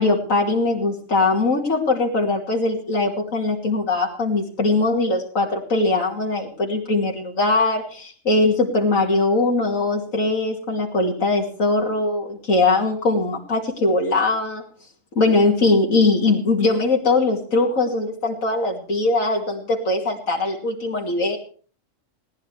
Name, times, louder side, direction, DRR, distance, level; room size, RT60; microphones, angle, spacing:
voice 1, 0.0-14.6 15.2-21.4, left 3 dB, 80° left, -1 dB, 2.9 m, -21 dB
20.5 x 17.5 x 3.4 m, 0.42 s
omnidirectional pair, 1.4 m